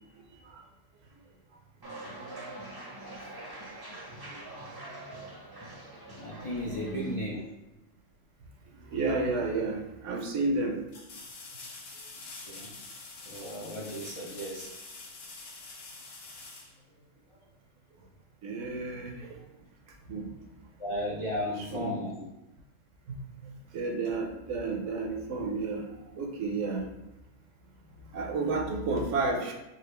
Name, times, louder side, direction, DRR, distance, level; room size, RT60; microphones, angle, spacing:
sound 1, 1.8-7.1, right 2 dB, 30° right, 0.5 m, -44 dB
voice 1, 6.2-7.5 12.5-12.7 13.3-14.7 20.8-22.3, left 1 dB, 55° left, -5 dB, 0.3 m, -35 dB
voice 2, 6.8-7.2 8.9-10.8 18.4-19.1 20.1-20.3 21.7-22.1 23.1-23.2 23.5-25.8 26.2-26.8 28.1-29.5, right 3 dB, 70° right, 1 dB, 1.0 m, -31 dB
sound 2, 10.9-17.5 20.4-20.5, left 3 dB, 80° left, 1.1 m, -46 dB
4.1 x 2.4 x 3.1 m, 0.96 s
omnidirectional pair, 1.3 m